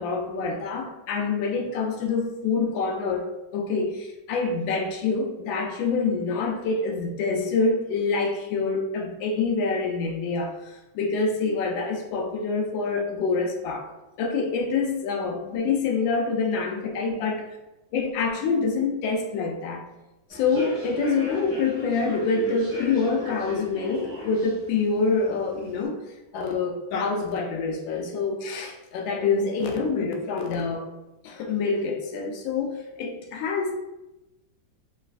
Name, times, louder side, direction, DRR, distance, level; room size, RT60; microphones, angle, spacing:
voice 1, 0.0-3.3 3.5-13.9 14.2-17.3 17.9-19.8 20.3-26.0 26.3-30.9 31.2-33.7, left 4 dB, 75° left, 3 dB, 1.2 m, -26 dB
Human voice / Subway metro underground, 20.3-25.8, left 1 dB, 10° left, 1.1 m, -37 dB
3.1 x 3.1 x 2.4 m, 0.98 s
omnidirectional pair, 2.2 m